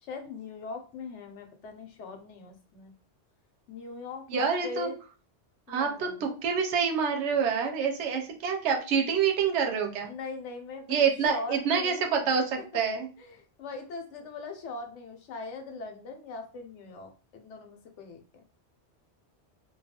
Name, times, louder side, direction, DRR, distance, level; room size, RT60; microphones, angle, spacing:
voice 1, 0.0-2.9 3.7-5.0 5.7-6.3 10.0-12.2 12.7-12.8 13.2-18.4, left 4 dB, 85° left, 5 dB, 0.9 m, -41 dB
voice 2, 4.3-4.9 5.7-10.1 10.9-13.1, right 6 dB, 80° right, 3 dB, 0.9 m, -27 dB
2.3 x 2.3 x 2.7 m, 0.36 s
omnidirectional pair, 1.2 m